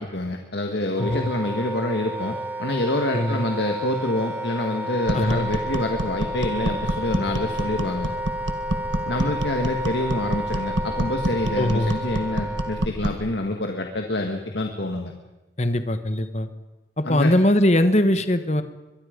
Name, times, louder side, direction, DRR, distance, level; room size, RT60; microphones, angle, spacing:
voice 1, 0.0-8.1 9.1-15.1 17.1-17.3, left 1 dB, 60° left, 4 dB, 1.7 m, -27 dB
Wind instrument woodwind instrument, 0.9-12.9, right 1 dB, 10° right, 1.1 m, -31 dB
voice 2, 1.0-1.3 3.1-3.5 5.1-5.5 11.6-11.9 15.6-16.5 17.0-18.6, left 1 dB, 35° left, 10 dB, 1.3 m, -21 dB
sound 1, 5.1-13.3, right 1 dB, 70° right, 1.7 m, -28 dB
24.0 x 22.5 x 5.2 m, 1.0 s
head